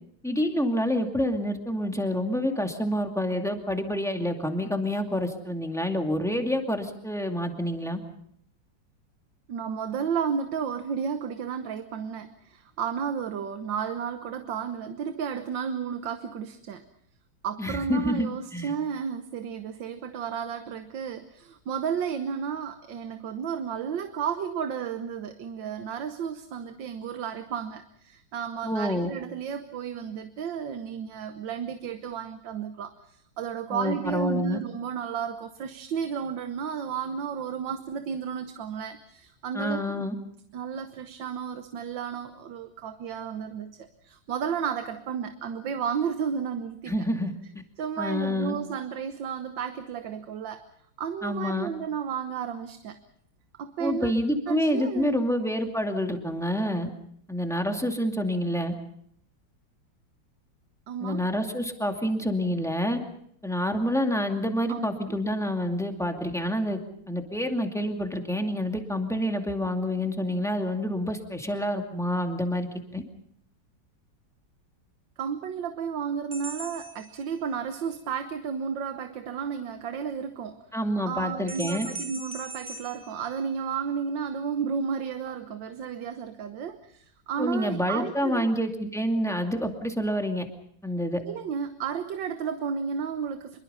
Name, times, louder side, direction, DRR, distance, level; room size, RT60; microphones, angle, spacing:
voice 1, 0.2-8.0 17.6-18.7 28.6-29.1 33.7-34.6 39.5-40.1 46.9-47.3 48.0-48.6 51.2-51.7 53.8-56.9 57.3-58.7 61.0-63.0 63.4-66.8 67.1-73.0 80.7-81.9 87.4-90.5 90.8-91.2, equal, ahead, 3 dB, 2.2 m, -28 dB
voice 2, 9.5-16.8 17.4-40.1 40.5-47.0 47.8-50.7 51.0-53.0 53.6-54.1 54.5-55.1 60.9-61.3 64.7-65.2 75.2-80.6 81.1-88.5 91.2-93.6, right 7 dB, 75° right, 9 dB, 1.7 m, -33 dB
sound 1, 76.3-77.8 81.5-84.0, right 2 dB, 20° right, 1.3 m, -41 dB
25.5 x 23.0 x 5.6 m, 0.68 s
omnidirectional pair, 2.1 m